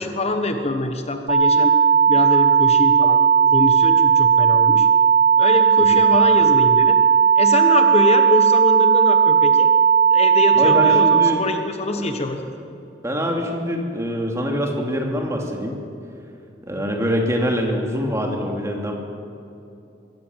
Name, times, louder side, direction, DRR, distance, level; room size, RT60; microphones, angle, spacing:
voice 1, 0.0-1.7 2.1-3.2 3.5-4.9 5.4-7.0 7.4-9.7 10.1-12.5, left 2 dB, 35° left, 6 dB, 1.2 m, -24 dB
sound 1, 1.3-11.3, right 7 dB, 60° right, 4.1 m, -15 dB
voice 2, 10.5-11.4 12.0-12.1 13.0-15.8 16.7-18.9, equal, 15° right, 1 dB, 2.9 m, -24 dB
23.0 x 16.5 x 7.4 m, 2.8 s
head